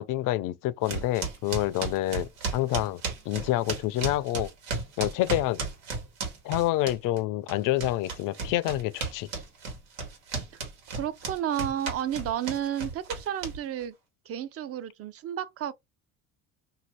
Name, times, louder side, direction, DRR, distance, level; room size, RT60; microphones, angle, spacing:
voice 1, 0.0-3.0 3.3-4.5 5.0-5.6 6.4-9.3, left 15 dB, 60° left, 0.5 m, -27 dB
sound 1, 0.8-7.2 7.5-13.8, right 4 dB, 90° right, 1.4 m, -34 dB
voice 2, 10.9-13.9 14.3-15.7, right 10 dB, 40° right, 0.5 m, -31 dB
2.7 x 2.6 x 3.1 m
supercardioid pair, 95°, 36 cm